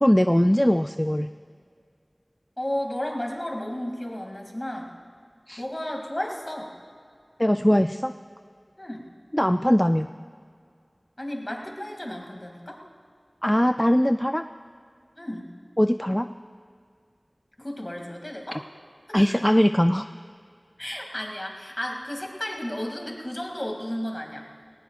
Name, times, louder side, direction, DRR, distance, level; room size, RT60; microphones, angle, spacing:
voice 1, 0.0-1.3 5.5-5.6 7.4-8.1 9.3-10.1 13.4-14.4 15.8-16.3 19.1-20.1, equal, 15° left, 9 dB, 0.3 m, -21 dB
voice 2, 2.6-4.9 5.6-6.7 8.8-9.1 11.2-12.8 15.2-15.5 17.6-18.6 19.1-19.4 20.8-24.5, left 1 dB, 35° left, 1 dB, 2.5 m, -33 dB
19.5 x 18.5 x 2.5 m, 2.2 s
wide cardioid pair, 40°, 0 cm